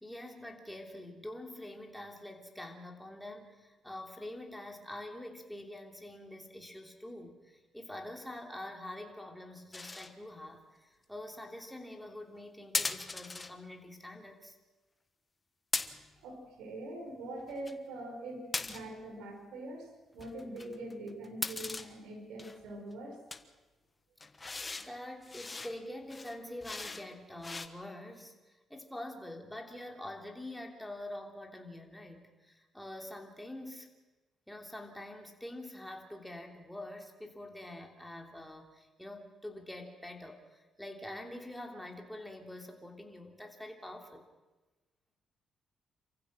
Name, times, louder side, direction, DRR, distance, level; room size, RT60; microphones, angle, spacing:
voice 1, 0.0-14.6 24.8-33.9 34.5-44.2, left 1 dB, 5° left, 1 dB, 3.1 m, -45 dB
sound 1, 9.7-10.1 12.7-13.5 15.7-16.2 17.4-17.7 18.5-19.0 20.2-21.9 22.4-22.7 23.3-23.4 24.2-24.9 25.2-25.8 26.1-27.1 27.4-27.7, left 3 dB, 25° left, 1.2 m, -38 dB
voice 2, 16.2-23.2, right 1 dB, 90° right, 3 dB, 5.4 m, -43 dB
27.5 x 15.0 x 6.3 m, 1.2 s
cardioid pair, 90°, 0 cm